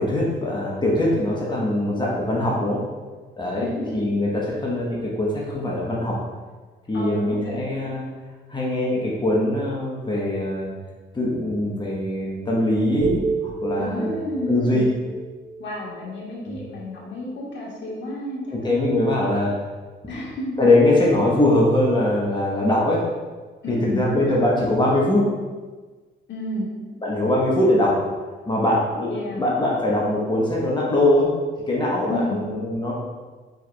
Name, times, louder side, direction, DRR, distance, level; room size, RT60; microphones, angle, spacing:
voice 1, 0.0-2.8 3.4-3.7 3.9-6.2 6.9-8.0 8.5-10.7 11.1-14.1 14.5-14.8 16.4-16.6 18.5-19.7 20.0-20.3 20.6-23.0 23.7-25.3 27.0-28.0 28.4-31.3 31.7-32.9, left 1 dB, 20° left, -4 dB, 1.0 m, -22 dB
voice 2, 6.9-7.6 13.8-14.8 15.6-18.9 20.1-20.6 23.6-24.1 26.3-26.7 29.1-29.4 32.1-32.5, left 1 dB, 65° left, -4 dB, 1.4 m, -31 dB
sound 1, 13.0-17.1, right 5 dB, 85° right, 1.0 m, -31 dB
4.5 x 4.5 x 2.2 m, 1.3 s
cardioid pair, 90°, 20 cm